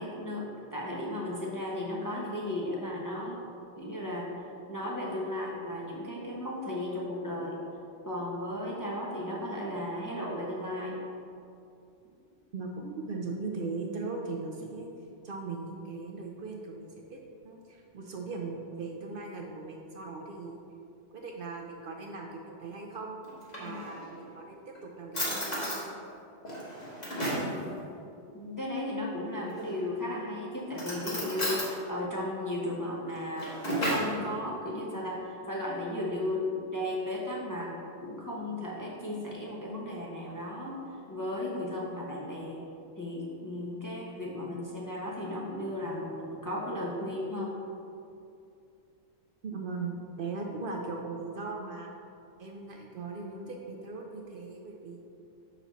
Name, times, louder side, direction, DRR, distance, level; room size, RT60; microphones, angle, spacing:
voice 1, 0.0-3.4 3.8-4.3 4.7-7.6 8.0-11.0 23.6-23.8 27.3-27.8 28.3-37.7 38.0-40.8 41.1-42.6 43.0-47.5, left 1 dB, 20° left, -5 dB, 0.6 m, -35 dB
voice 2, 12.5-14.9 15.2-20.6 21.1-23.2 23.6-25.9 49.4-51.9 52.4-55.0, right 3 dB, 60° right, 1 dB, 0.7 m, -39 dB
Drawer open or close, 23.2-24.2 24.7-24.8 25.1-25.8 26.4-27.5 29.4-30.0 30.7-31.7 33.1-34.2, equal, 40° left, 1.4 m, -33 dB
6.0 x 4.3 x 4.0 m, 2.6 s
omnidirectional pair, 1.1 m